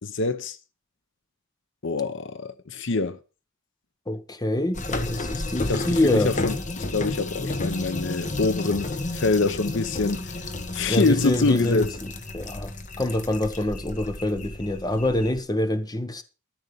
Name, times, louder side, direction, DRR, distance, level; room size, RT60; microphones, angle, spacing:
voice 1, 0.0-0.6 1.8-3.2 5.7-10.3 10.7-11.9, left 3 dB, 65° left, 0.8 m, -25 dB
voice 2, 4.1-6.3 10.9-12.7 13.0-16.2, left 1 dB, 20° left, 1.2 m, -26 dB
sound 1, 4.7-15.4, left 2 dB, 40° left, 1.4 m, -32 dB
13.5 x 6.5 x 7.0 m
head